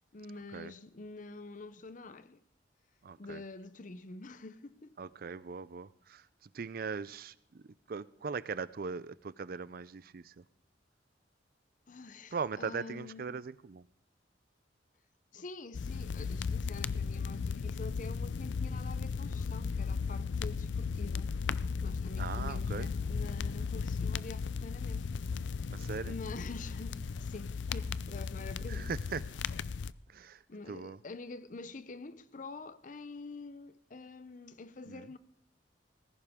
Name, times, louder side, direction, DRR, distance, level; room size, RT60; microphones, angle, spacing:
voice 1, 0.1-2.4 3.2-5.0 11.9-13.3 15.3-21.3 21.8-25.1 25.5-25.8 26.0-28.9 30.5-35.2, left 3 dB, 45° left, 0.7 m, -47 dB
voice 2, 3.0-3.4 5.0-6.3 6.5-10.4 12.3-13.9 22.2-22.9 25.7-26.1 28.7-29.2 30.1-30.4 30.7-31.0 34.9-35.1, right 5 dB, 55° right, 0.5 m, -40 dB
sound 1, 15.7-29.9, left 5 dB, 80° left, 0.4 m, -36 dB
19.0 x 15.5 x 3.7 m
head